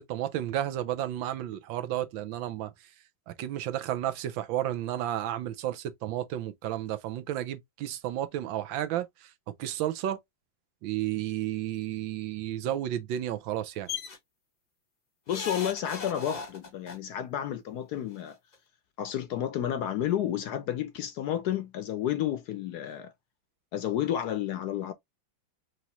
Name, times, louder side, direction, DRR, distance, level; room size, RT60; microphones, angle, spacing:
voice 1, 0.0-2.7 3.3-9.3 9.6-10.2 10.8-13.9, right 12 dB, 80° right, 1.4 m, -32 dB
sound 1, 13.9-14.2 15.3-17.0 18.2-18.3 18.5-18.6, left 5 dB, 45° left, 0.5 m, -37 dB
voice 2, 15.3-18.4 19.0-23.1 23.7-24.9, left 10 dB, 70° left, 1.0 m, -31 dB
5.1 x 3.0 x 2.7 m
omnidirectional pair, 2.1 m